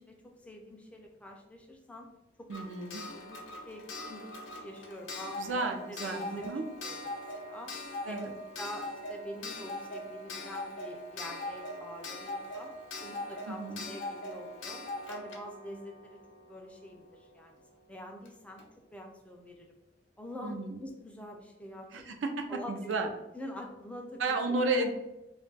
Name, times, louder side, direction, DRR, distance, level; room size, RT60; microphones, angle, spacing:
voice 1, 0.0-2.1 2.4-2.5 2.8-5.6 5.9-6.5 6.8-7.0 7.3-7.7 8.1-8.2 8.6-12.7 13.0-16.2 16.5-17.6 17.9-18.7 18.9-19.7 20.2-21.9 22.5-23.0 23.3-24.9, left 1 dB, 5° left, 2 dB, 0.3 m, -45 dB
Clock, 2.5-17.1 18.2-18.3 18.6-18.7, left 2 dB, 80° left, 0.6 m, -41 dB
voice 2, 2.5-3.0 5.4-6.6 8.0-8.3 13.5-13.8 20.4-20.8 21.9-23.1 24.2-24.9, right 3 dB, 85° right, 4 dB, 0.5 m, -33 dB
2.3 x 2.2 x 3.8 m, 0.93 s
head